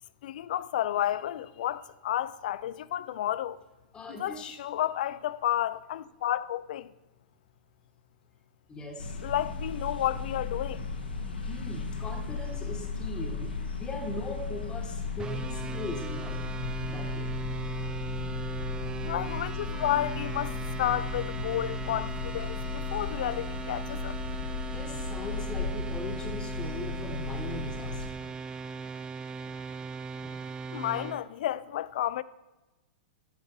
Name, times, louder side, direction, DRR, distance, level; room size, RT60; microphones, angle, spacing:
voice 1, 0.2-3.6 4.1-6.9 9.2-10.9 19.0-24.1 30.7-32.2, left 12 dB, 55° left, 0.4 m, -31 dB
voice 2, 3.9-4.6 8.7-9.2 11.4-16.4 16.9-17.3 24.7-28.3 30.2-30.3, left 2 dB, 15° left, 1.2 m, -40 dB
sound 1, 9.0-28.1, left 4 dB, 80° left, 1.2 m, -35 dB
sound 2, 15.2-31.2, right 5 dB, 15° right, 0.4 m, -39 dB
9.0 x 5.2 x 5.8 m
figure-of-eight pair, 105°, 5 cm